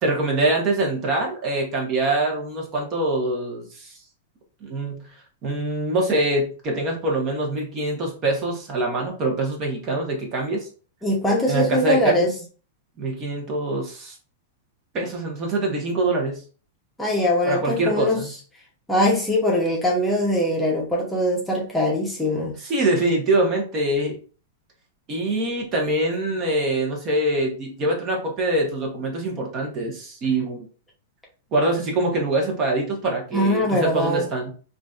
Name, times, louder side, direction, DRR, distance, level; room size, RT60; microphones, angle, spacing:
voice 1, 0.0-3.9 4.6-5.0 5.4-10.7 11.5-12.3 13.0-14.1 14.9-16.4 17.4-18.3 22.6-24.2 25.1-30.7 31.5-34.5, right 2 dB, 35° right, 0 dB, 1.1 m, -24 dB
voice 2, 11.0-12.3 17.0-18.2 18.9-22.5 33.3-34.3, left 1 dB, 5° left, -3 dB, 0.9 m, -22 dB
3.8 x 2.6 x 2.4 m, 0.38 s
hypercardioid pair, 125°, 0 cm